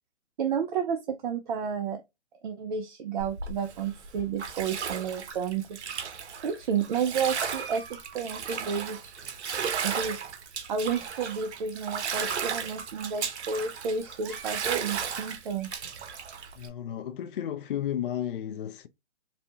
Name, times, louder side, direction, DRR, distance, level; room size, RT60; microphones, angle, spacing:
voice 1, 0.4-2.0 2.4-5.8 6.4-9.0 9.8-10.2 10.7-15.7, right 6 dB, 40° right, 0.6 m, -31 dB
Bathtub (filling or washing), 3.2-16.7, right 6 dB, 65° right, 1.0 m, -35 dB
sound 1, 7.4-8.8 9.5-10.2 10.6-11.3 11.6-11.7 12.4-12.5 12.9-13.0 14.0-14.8 15.3-16.2, right 4 dB, 5° right, 0.8 m, -50 dB
voice 2, 16.6-18.9, left 10 dB, 45° left, 0.5 m, -33 dB
4.1 x 2.8 x 2.3 m
hypercardioid pair, 145°, 37 cm